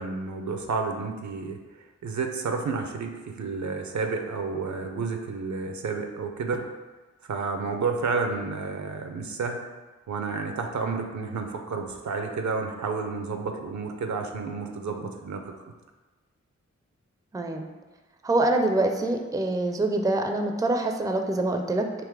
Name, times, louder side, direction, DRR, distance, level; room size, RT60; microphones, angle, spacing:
voice 1, 0.0-1.6 2.0-6.7 7.3-9.6 10.1-15.4, right 4 dB, 75° right, 4 dB, 0.6 m, -30 dB
voice 2, 17.3-17.6 18.2-21.9, right 2 dB, 10° right, 4 dB, 0.4 m, -25 dB
3.8 x 2.9 x 4.7 m, 1.2 s
wide cardioid pair, 65°, 29 cm